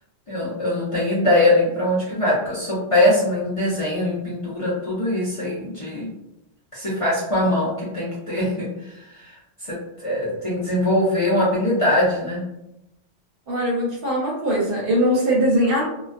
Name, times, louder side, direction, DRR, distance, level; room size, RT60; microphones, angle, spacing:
voice 1, 0.3-6.1 6.7-8.7 9.2-9.3 9.6-12.5, left 1 dB, 40° left, -9 dB, 0.6 m, -22 dB
voice 2, 13.5-15.8, equal, 55° right, -3 dB, 0.8 m, -21 dB
2.2 x 2.2 x 2.4 m, 0.88 s
omnidirectional pair, 1.2 m